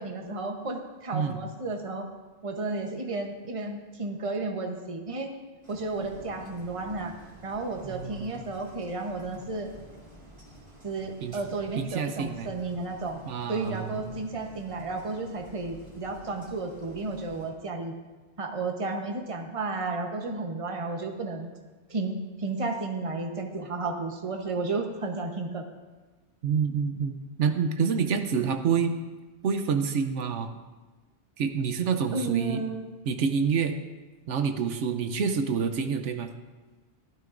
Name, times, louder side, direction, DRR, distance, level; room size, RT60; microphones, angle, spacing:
voice 1, 0.0-2.1 2.4-5.3 5.7-7.1 7.4-9.7 10.8-13.2 13.5-17.9 18.4-21.5 21.9-25.6 32.1-32.9, right 3 dB, 30° right, 3 dB, 1.0 m, -32 dB
sound 1, 5.6-17.5, right 1 dB, 45° right, 2.7 m, -50 dB
voice 2, 7.9-8.3 11.2-11.4 11.8-12.5 13.3-14.1 26.4-29.0 29.4-30.5 31.4-32.6 33.0-33.8 34.3-36.3, right 6 dB, 85° right, 7 dB, 1.1 m, -27 dB
16.5 x 12.5 x 2.6 m, 1.3 s
omnidirectional pair, 1.2 m